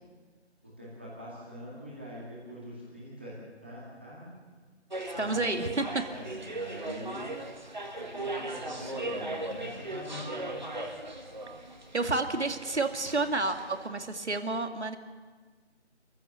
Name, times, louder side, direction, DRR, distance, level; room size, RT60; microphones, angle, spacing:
voice 1, 0.6-3.4 3.6-4.4 5.1-5.8 6.1-7.4 8.0-10.6, equal, 10° right, -7 dB, 2.1 m, -43 dB
sound 1, 4.9-13.9, right 2 dB, 40° right, 1.8 m, -38 dB
voice 2, 5.2-5.9 11.9-15.0, right 3 dB, 70° right, 6 dB, 2.2 m, -30 dB
27.0 x 15.0 x 6.8 m, 1.5 s
figure-of-eight pair, 180°, 35 cm